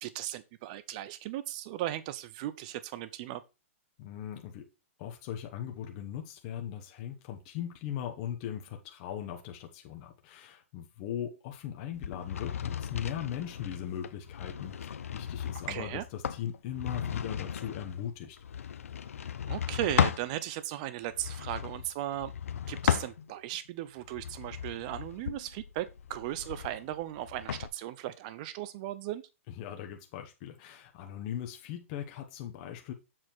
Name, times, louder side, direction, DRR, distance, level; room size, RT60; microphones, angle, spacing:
voice 1, 0.0-3.4 15.7-16.0 19.5-22.3 22.7-29.2, right 13 dB, 35° right, 0.6 m, -37 dB
voice 2, 4.0-4.7 5.0-18.4 29.5-32.9, left 10 dB, 30° left, 1.2 m, -39 dB
sound 1, 11.9-20.3 21.1-23.6 24.0-27.7, left 8 dB, 85° left, 0.7 m, -35 dB
7.4 x 4.2 x 4.4 m
hypercardioid pair, 160°, 7 cm